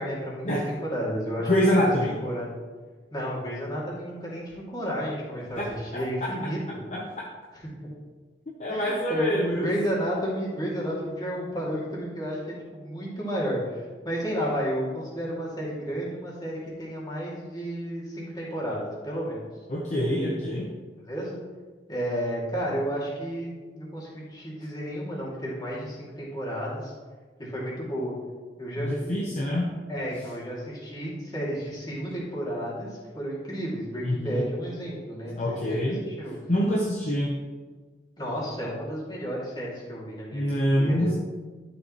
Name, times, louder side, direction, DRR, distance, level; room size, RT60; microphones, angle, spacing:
voice 1, 0.0-2.5 3.1-6.8 7.8-7.9 8.7-19.5 21.1-21.4 21.9-26.9 27.4-28.1 28.6-28.9 29.9-36.4 38.2-41.1, equal, 25° left, -6 dB, 2.7 m, -32 dB
voice 2, 1.5-2.2 5.6-5.7 6.9-7.3 8.6-9.7 19.7-20.7 28.8-29.7 34.0-34.4 35.4-36.1 36.5-37.4 40.3-41.2, equal, 40° left, -3 dB, 1.0 m, -25 dB
12.0 x 7.0 x 3.2 m, 1.4 s
head